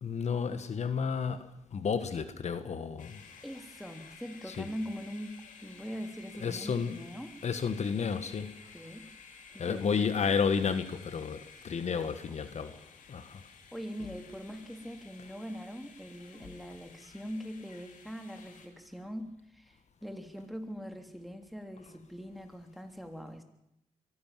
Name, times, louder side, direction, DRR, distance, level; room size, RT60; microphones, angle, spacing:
voice 1, 0.0-3.2 4.4-4.7 6.4-7.0 7.4-8.5 9.6-12.8 13.1-13.4, left 6 dB, 60° left, 11 dB, 1.5 m, -32 dB
sound 1, 3.0-18.7, left 5 dB, 85° left, 2.9 m, -54 dB
voice 2, 3.4-7.3 8.7-9.1 9.5-10.2 11.9-12.2 13.7-23.4, equal, ahead, 6 dB, 3.4 m, -42 dB
23.0 x 16.5 x 7.6 m, 0.81 s
cardioid pair, 60°, 13 cm